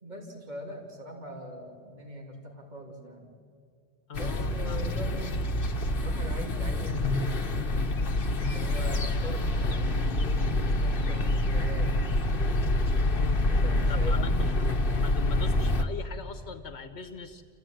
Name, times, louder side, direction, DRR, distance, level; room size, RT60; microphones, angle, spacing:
voice 1, 0.0-3.3 4.1-5.5 5.9-7.7 8.4-12.0 13.5-14.4, equal, 40° right, 0 dB, 3.0 m, -41 dB
voice 2, 4.1-4.9 12.9-13.4 13.9-14.5 15.0-17.4, left 5 dB, 80° left, 9 dB, 1.3 m, -39 dB
sound 1, 4.1-15.8, left 1 dB, 55° left, 1.3 m, -27 dB
27.5 x 15.5 x 9.1 m, 2.3 s
omnidirectional pair, 1.1 m